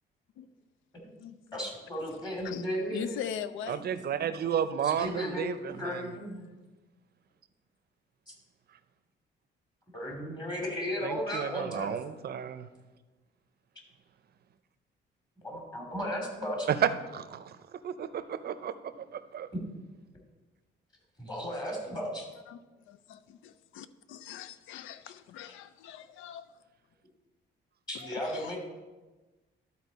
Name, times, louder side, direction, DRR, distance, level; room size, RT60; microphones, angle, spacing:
voice 1, 1.5-3.2 4.8-6.5 8.3-8.4 9.9-11.9 15.4-16.7 21.2-22.2 27.9-28.6, equal, 20° left, -1 dB, 2.8 m, -35 dB
voice 2, 2.9-3.8 22.5-22.6 22.9-26.5 27.9-28.6, left 9 dB, 85° left, 14 dB, 0.4 m, -41 dB
voice 3, 3.7-6.1 11.0-12.7 17.1-17.5 17.8-18.7 19.3-19.5, right 8 dB, 55° right, 12 dB, 0.6 m, -33 dB
12.5 x 4.2 x 4.1 m, 1.2 s
cardioid pair, 90°, 20 cm